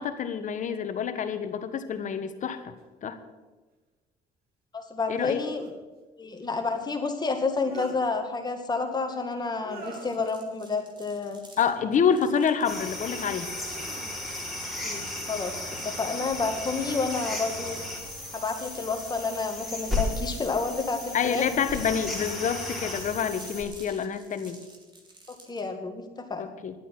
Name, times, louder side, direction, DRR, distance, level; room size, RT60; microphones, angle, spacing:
voice 1, 0.0-2.7 3.0-3.2 5.1-5.4 11.6-13.5 21.1-24.6 26.4-26.7, left 7 dB, 50° left, 9 dB, 1.4 m, -27 dB
sound 1, 2.8-2.9 5.2-5.8 7.3-8.0 9.5-10.3 11.8-12.2 12.7-13.3 13.7-14.6 15.8-16.4 17.0-19.0 20.1-20.6 21.2-21.7, right 4 dB, 65° right, 2.6 m, -48 dB
voice 2, 4.7-5.6 6.2-11.4 14.8-15.0 15.3-17.8 18.3-21.4 25.5-26.5, left 4 dB, 25° left, 4 dB, 2.1 m, -30 dB
sound 2, 9.8-25.7, right 2 dB, 25° right, 2.7 m, -51 dB
sound 3, 12.6-23.6, left 2 dB, ahead, 4.3 m, -35 dB
11.5 x 8.4 x 9.9 m, 1.2 s
cardioid pair, 110°, 17 cm